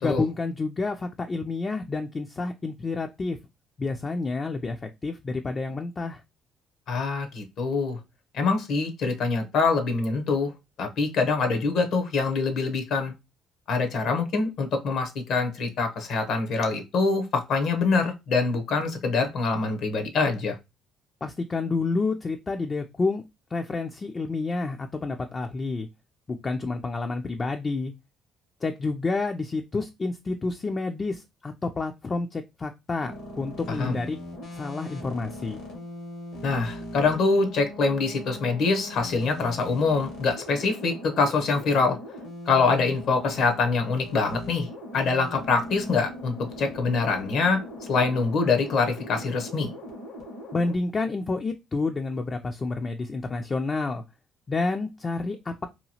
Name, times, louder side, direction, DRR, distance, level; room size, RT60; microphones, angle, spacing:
voice 1, 0.0-3.4 3.8-6.2 21.2-23.2 23.5-25.9 26.3-27.9 28.6-34.2 34.5-35.6 50.5-54.0 54.5-55.7, left 3 dB, 30° left, 0.3 m, -29 dB
voice 2, 6.9-8.0 8.3-10.5 10.8-13.1 13.7-20.6 33.8-34.0 36.4-42.0 42.5-44.7 44.9-47.6 47.9-49.7, left 4 dB, 70° left, 0.7 m, -24 dB
sound 1, 33.0-50.8, left 1 dB, 85° left, 1.3 m, -40 dB
2.9 x 2.3 x 2.7 m
cardioid pair, 90°, 0 cm